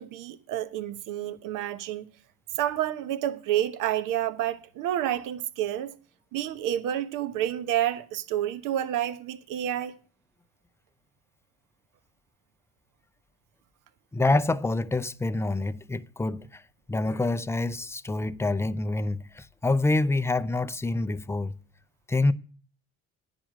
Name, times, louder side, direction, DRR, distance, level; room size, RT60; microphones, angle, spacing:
voice 1, 0.0-2.1 2.6-5.9 6.3-9.9, right 11 dB, 60° right, 1.1 m, -29 dB
voice 2, 14.1-16.6 16.9-21.6 22.1-22.3, left 2 dB, 10° left, 0.5 m, -26 dB
10.0 x 6.2 x 8.8 m
hypercardioid pair, 75°, 35 cm